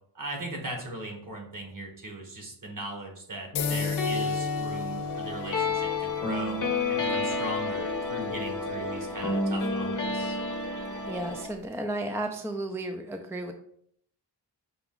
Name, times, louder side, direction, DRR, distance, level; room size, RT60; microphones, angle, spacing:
voice 1, 0.1-10.4, right 1 dB, 45° right, 2 dB, 1.4 m, -39 dB
sound 1, 3.5-11.5, left 3 dB, 45° left, 0.9 m, -30 dB
sound 2, 3.6-11.7, left 9 dB, 70° left, 0.5 m, -44 dB
voice 2, 11.1-13.5, right 1 dB, 5° right, 5 dB, 0.4 m, -33 dB
6.1 x 2.3 x 3.8 m, 0.67 s
cardioid pair, 75°, 43 cm